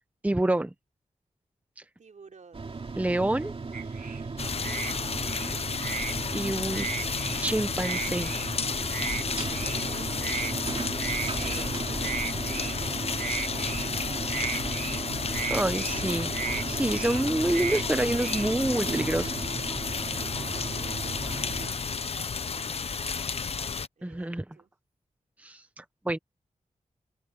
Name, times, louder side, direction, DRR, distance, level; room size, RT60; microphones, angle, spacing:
voice 1, 0.2-0.7 3.0-3.5 6.3-6.9 7.4-8.3 15.5-16.3 16.6-19.5 24.0-24.4 25.4-26.2, right 1 dB, 10° right, 0.9 m, -27 dB
voice 2, 2.0-2.9 4.6-5.0 9.5-13.2 13.5-14.6 20.5-23.3 24.0-24.7, right 5 dB, 65° right, 5.1 m, -51 dB
sound 1, 2.5-21.7, right 4 dB, 45° right, 2.8 m, -36 dB
sound 2, 3.7-4.2 4.6-4.9 5.2-6.1 6.7-7.4 7.8-8.5 8.9-9.2 9.5-9.8 10.2-10.5 11.0-11.7 12.0-12.8 13.2-13.9 14.3-15.0 15.3-16.0 16.3-16.6 16.9-17.2 17.5-17.8 18.2-18.8, right 6 dB, 80° right, 1.7 m, -35 dB
sound 3, 4.4-23.9, left 5 dB, 50° left, 0.7 m, -32 dB
open air
wide cardioid pair, 125°, 13 cm